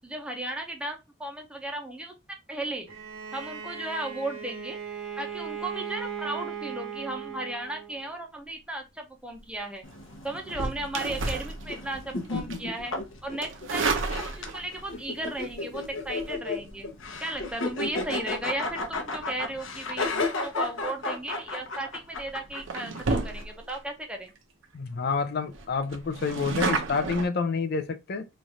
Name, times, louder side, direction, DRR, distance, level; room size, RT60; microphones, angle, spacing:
voice 1, 0.0-2.9 3.3-4.8 5.2-9.8 10.2-12.9 13.2-16.9 17.2-24.3, right 1 dB, 5° right, 0.6 m, -35 dB
Bowed string instrument, 2.9-8.0, right 7 dB, 90° right, 1.3 m, -37 dB
sound 1, 9.8-23.4, left 3 dB, 70° left, 0.8 m, -34 dB
sound 2, 10.5-12.1 12.5-12.8 13.4-14.8 16.1-16.3 21.4-21.6 22.1-22.3 22.7-23.8 24.3-24.4 24.6-24.7 25.1-25.2 25.5-27.3, right 3 dB, 65° right, 0.8 m, -31 dB
voice 2, 24.7-28.3, left 4 dB, 50° left, 0.4 m, -28 dB
3.2 x 2.5 x 4.1 m
head